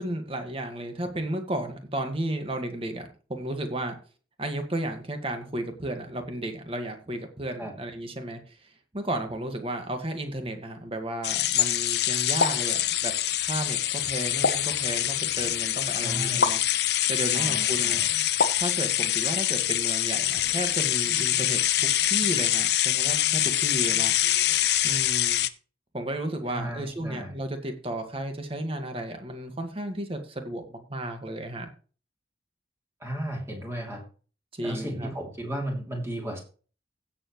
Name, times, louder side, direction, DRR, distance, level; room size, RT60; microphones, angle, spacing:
voice 1, 0.0-3.9 4.4-13.1 13.4-18.0 18.6-21.6 22.0-24.4 24.8-25.4 25.9-31.7 34.5-35.1, right 1 dB, 30° right, 6 dB, 1.7 m, -33 dB
sound 1, 11.2-25.5, left 13 dB, 65° left, 0.6 m, -25 dB
sound 2, 12.4-12.7 14.4-14.8 16.4-16.7 18.4-18.7, left 4 dB, 80° left, 1.1 m, -25 dB
voice 2, 15.9-16.5 17.3-18.1 26.5-27.4 33.0-34.0 34.6-36.4, right 1 dB, 15° right, 1 dB, 2.9 m, -34 dB
16.5 x 7.1 x 3.1 m, 0.38 s
head